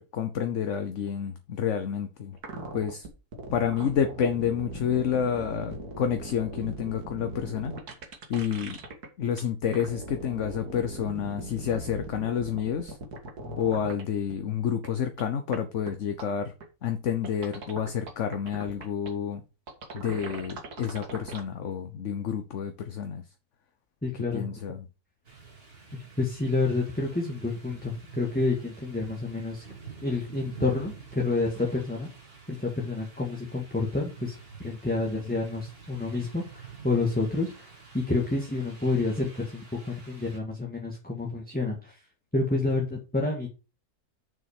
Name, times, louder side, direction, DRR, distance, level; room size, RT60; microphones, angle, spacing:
voice 1, 0.0-2.4 2.7-3.1 3.5-7.7 8.3-8.8 9.2-13.0 13.6-16.5 16.8-19.4 19.9-23.2 24.3-24.8, left 8 dB, 55° left, 1.1 m, -29 dB
sound 1, 2.4-9.1 9.4-14.0 14.3-14.4 14.8-14.9 15.2-15.3 15.5-15.6 15.9-16.0 16.2-16.3 16.6-16.7 17.2-19.1 19.7-21.4, right 2 dB, 80° right, 2.3 m, -39 dB
voice 2, 24.0-24.6 26.2-29.6 30.0-32.1 32.5-42.0 42.3-43.5, left 3 dB, 5° left, 1.6 m, -29 dB
sound 2, 25.2-40.4, right 5 dB, 40° right, 2.3 m, -47 dB
7.2 x 6.1 x 4.9 m
omnidirectional pair, 1.6 m